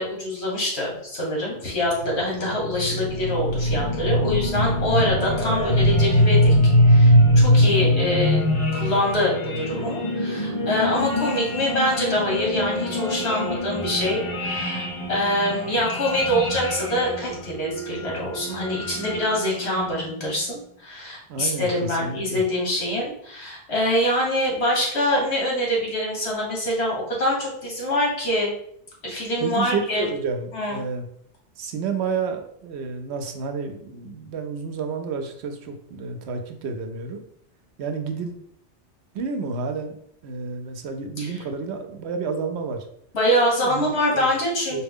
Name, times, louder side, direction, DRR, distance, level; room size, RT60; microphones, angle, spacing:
voice 1, 0.0-6.5 6.9-8.4 8.7-28.5 29.0-30.1 30.5-30.8 41.2-41.3 43.1-44.8, left 1 dB, 75° left, -2 dB, 1.5 m, -25 dB
sound 1, 1.9-20.2, equal, 35° left, 0.6 m, -22 dB
voice 2, 21.3-22.4 29.4-31.1 31.6-37.2 37.8-38.4 39.1-40.0 40.2-42.9 43.6-43.8 44.1-44.3 44.7-44.8, right 5 dB, 80° right, 6 dB, 0.9 m, -30 dB
4.4 x 2.2 x 3.5 m, 0.69 s
omnidirectional pair, 1.1 m